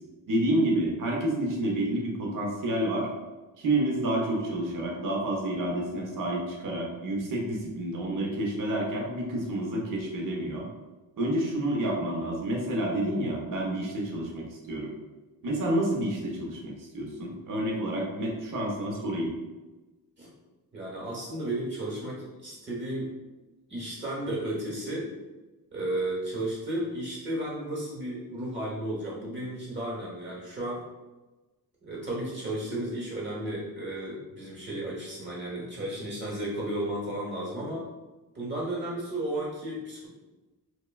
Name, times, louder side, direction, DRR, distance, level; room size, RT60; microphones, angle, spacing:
voice 1, 0.3-3.1 3.6-10.7 11.2-14.9 15.4-19.3, right 1 dB, 55° right, -1 dB, 0.7 m, -29 dB
voice 2, 20.7-23.1 23.7-25.1 25.7-30.8 31.8-37.9 38.3-40.1, right 1 dB, 30° right, -4 dB, 1.0 m, -33 dB
3.1 x 2.2 x 2.2 m, 1.1 s
wide cardioid pair, 140°, 38 cm